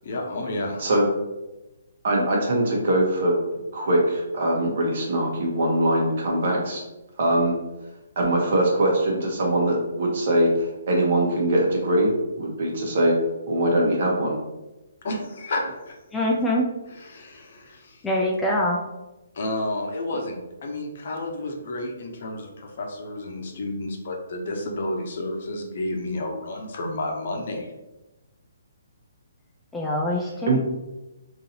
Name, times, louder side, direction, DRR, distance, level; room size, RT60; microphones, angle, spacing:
voice 1, 0.0-0.8 15.0-16.0 16.3-16.4 16.9-18.0 19.3-27.7, left 1 dB, 55° left, 2 dB, 0.7 m, -31 dB
voice 2, 0.8-1.1 2.0-3.4 3.7-6.8 7.2-7.6 8.2-12.1 12.4-13.2 13.5-14.4 30.5-30.6, right 1 dB, 55° right, -1 dB, 1.1 m, -22 dB
voice 3, 16.1-16.7 18.0-18.8 29.7-30.6, left 1 dB, 10° left, -3 dB, 0.4 m, -24 dB
3.8 x 2.7 x 2.8 m, 1.0 s
hypercardioid pair, 140°, 0 cm